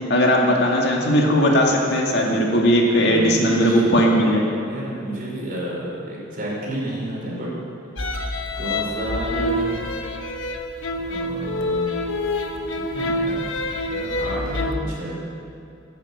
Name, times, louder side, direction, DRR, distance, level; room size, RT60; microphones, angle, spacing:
voice 1, 0.1-4.4, equal, 55° left, -1 dB, 2.2 m, -18 dB
voice 2, 3.1-4.1 4.7-7.5 8.6-9.8 11.0-11.9 12.7-13.5 13.8-15.2, right 1 dB, 45° right, -4 dB, 5.0 m, -31 dB
sound 1, 8.0-14.7, left 1 dB, 80° left, 1.3 m, -26 dB
14.0 x 10.5 x 8.7 m, 2.5 s
head